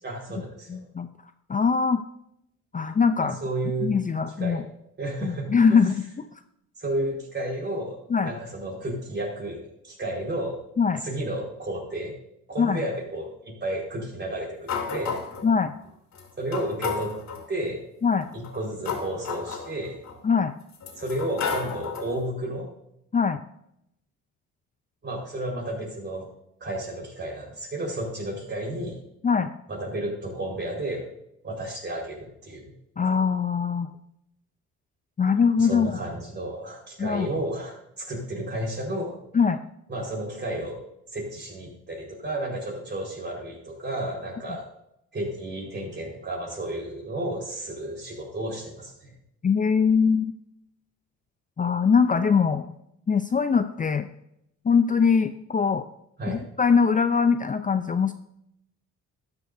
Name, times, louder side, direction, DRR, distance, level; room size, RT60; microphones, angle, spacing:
voice 1, 0.0-0.8 3.2-3.9 4.4-4.6 5.0-5.8 6.8-8.0 8.2-10.6 11.0-12.1 12.5-15.2 16.4-17.1 17.5-17.9 18.3-20.0 21.0-22.7 25.0-26.3 26.6-29.0 29.7-31.1 31.4-32.7 35.6-39.2 39.9-40.8 41.1-44.6 45.1-49.1 56.2-56.5, right 1 dB, 35° right, -1 dB, 4.7 m, -32 dB
voice 2, 0.7-1.1 1.5-2.0 2.7-3.4 3.8-4.6 5.2-6.3 8.1-8.3 10.8-11.0 12.6-12.8 15.4-15.7 18.0-18.3 20.2-20.5 23.1-23.4 29.2-29.5 33.0-33.9 35.2-35.9 37.0-37.3 39.3-39.6 49.4-50.3 51.6-52.7 53.1-54.1 54.6-55.9 56.3-58.1, left 5 dB, 25° left, 9 dB, 0.5 m, -22 dB
sound 1, 14.7-15.5 16.1-16.2 16.5-17.5 18.3-20.1 20.7-22.2, left 5 dB, 60° left, 2.8 m, -32 dB
13.0 x 11.0 x 2.7 m, 0.78 s
cardioid pair, 90°, 30 cm